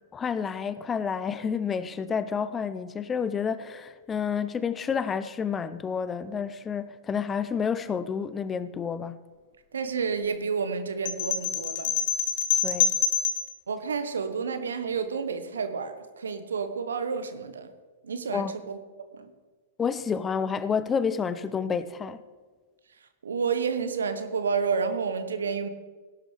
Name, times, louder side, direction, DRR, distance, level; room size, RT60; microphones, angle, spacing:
voice 1, 0.0-9.2 12.6-12.9 18.3-18.5 19.8-22.2, left 6 dB, 20° left, 0.6 m, -29 dB
voice 2, 9.7-11.9 13.7-17.7 18.0-18.8 19.1-19.3 23.0-25.7, right 5 dB, 75° right, 1.1 m, -30 dB
sound 1, 11.1-13.5, left 8 dB, 55° left, 1.2 m, -26 dB
17.5 x 11.5 x 3.4 m
figure-of-eight pair, 105°, 0 cm